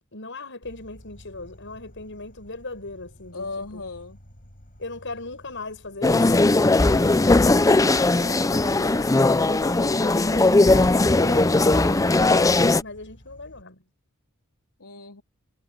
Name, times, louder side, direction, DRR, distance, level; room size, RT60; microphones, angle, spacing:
voice 1, 0.0-3.8 4.8-6.6 8.2-9.0 9.3-13.8, left 3 dB, 60° left, 7.9 m, -39 dB
Insect, 0.6-13.6, equal, 40° left, 5.6 m, -50 dB
voice 2, 3.3-4.2 14.8-15.2, left 3 dB, 85° left, 3.1 m, -37 dB
sound 1, 6.0-12.8, left 2 dB, 15° left, 0.5 m, -19 dB
sound 2, 6.9-12.5, right 3 dB, 35° right, 1.5 m, -42 dB
head